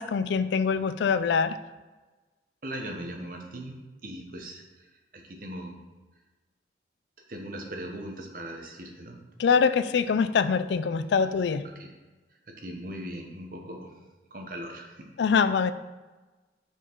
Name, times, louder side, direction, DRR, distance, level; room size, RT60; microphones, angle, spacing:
voice 1, 0.0-1.6 9.4-11.6 15.2-15.7, left 5 dB, 75° left, 13 dB, 0.3 m, -24 dB
voice 2, 2.6-5.8 7.3-9.2 11.7-11.9 12.5-13.9 14.3-15.1, right 1 dB, 50° right, 2 dB, 1.0 m, -39 dB
6.0 x 4.5 x 4.5 m, 1.2 s
head